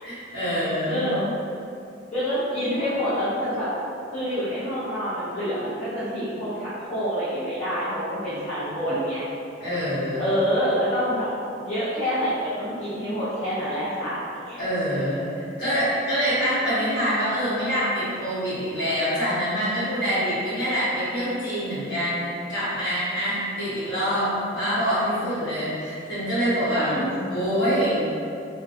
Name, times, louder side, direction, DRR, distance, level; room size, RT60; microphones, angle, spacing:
voice 1, 0.0-1.1 9.6-10.3 14.6-15.2 15.6-26.9 27.3-28.0, equal, 60° left, -13 dB, 1.4 m, -25 dB
voice 2, 0.8-1.3 2.1-3.7 4.1-9.2 10.2-11.3 11.6-14.6 26.7-27.3, equal, 35° left, -14 dB, 0.6 m, -27 dB
2.3 x 2.2 x 2.6 m, 2.5 s
head